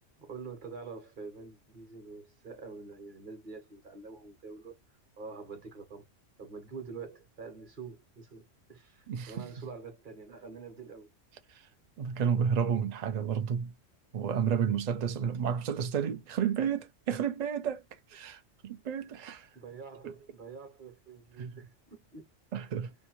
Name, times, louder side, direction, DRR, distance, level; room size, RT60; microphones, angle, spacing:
voice 1, 0.2-4.8 5.2-6.1 6.4-11.1 19.5-22.3, right 4 dB, 45° right, 1.0 m, -46 dB
voice 2, 9.1-9.4 11.5-11.7 12.0-13.7 14.1-17.8 18.1-19.5 21.4-21.5 22.5-22.9, right 7 dB, 80° right, 0.3 m, -31 dB
2.6 x 2.1 x 2.9 m
omnidirectional pair, 1.3 m